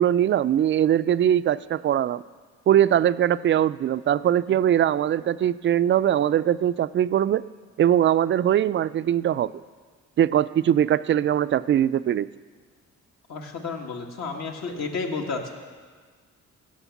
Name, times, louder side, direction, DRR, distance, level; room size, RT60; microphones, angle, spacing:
voice 1, 0.0-2.2 2.7-7.5 7.8-9.6 10.2-12.3, right 10 dB, 40° right, 15 dB, 0.4 m, -21 dB
voice 2, 13.3-15.5, left 4 dB, 60° left, 2 dB, 1.9 m, -31 dB
16.0 x 6.5 x 7.1 m, 1.5 s
cardioid pair, 90°, 30 cm